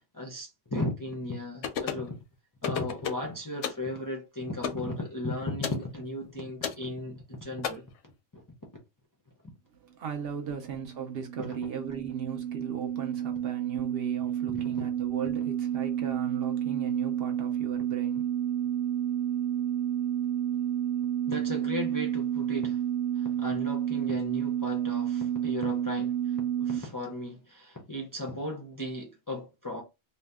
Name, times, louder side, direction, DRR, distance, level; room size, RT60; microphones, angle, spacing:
voice 1, 0.1-2.2 2.6-7.8 8.3-8.4 14.7-14.9 21.3-22.8 23.2-26.2 26.6-29.8, left 1 dB, 25° left, 0.4 m, -36 dB
sound 1, 1.6-2.1 2.6-3.3 3.6-3.9 4.6-4.9 5.6-5.8 6.6-6.8 7.6-7.7, left 7 dB, 85° left, 0.9 m, -32 dB
voice 2, 9.8-18.3, right 6 dB, 65° right, 0.8 m, -37 dB
sound 2, 10.6-26.8, right 10 dB, 85° right, 1.1 m, -30 dB
2.7 x 2.2 x 3.4 m
omnidirectional pair, 1.2 m